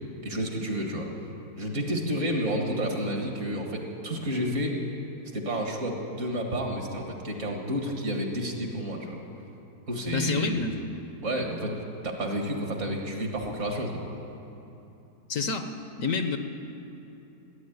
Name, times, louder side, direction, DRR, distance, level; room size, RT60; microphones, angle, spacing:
voice 1, 0.2-1.1 1.6-4.8 5.3-9.2 9.9-10.6 11.2-14.0, equal, 50° right, 2 dB, 2.1 m, -30 dB
voice 2, 10.1-10.8 15.3-15.7 16.0-16.4, left 4 dB, 60° left, 7 dB, 1.2 m, -28 dB
16.0 x 9.5 x 9.3 m, 3.0 s
omnidirectional pair, 1.7 m